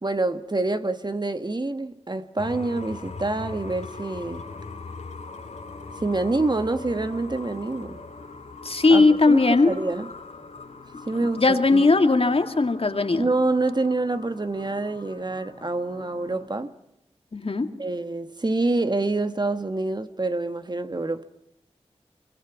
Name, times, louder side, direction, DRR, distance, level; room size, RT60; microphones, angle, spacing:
voice 1, 0.0-4.5 6.0-8.0 8.9-10.1 11.1-11.9 13.1-16.7 17.8-21.2, right 2 dB, 40° right, 1.4 m, -27 dB
sound 1, 2.4-16.5, left 3 dB, 85° left, 3.3 m, -41 dB
voice 2, 8.6-9.7 11.2-13.3 17.3-17.7, left 3 dB, 55° left, 2.1 m, -19 dB
24.5 x 23.0 x 6.0 m
cardioid pair, 40°, 12 cm